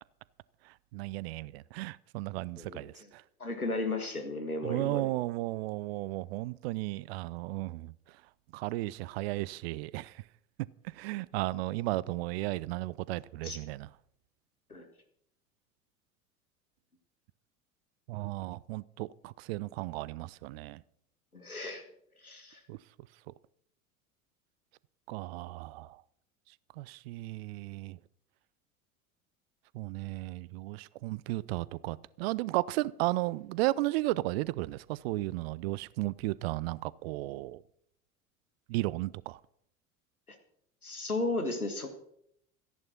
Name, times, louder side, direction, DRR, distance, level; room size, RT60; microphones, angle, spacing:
voice 1, 0.6-3.2 4.6-7.9 8.5-10.2 10.9-13.9 18.1-20.8 22.7-22.8 25.1-26.0 26.8-28.0 29.7-37.6 38.7-39.4, right 19 dB, 45° right, 0.5 m, -34 dB
voice 2, 2.6-3.1 3.4-5.1 13.4-13.6 14.7-14.9 21.3-21.8 22.2-22.6 40.3-40.4 40.8-41.9, left 2 dB, 85° left, 1.9 m, -35 dB
13.5 x 10.5 x 5.9 m
figure-of-eight pair, 75°, 42 cm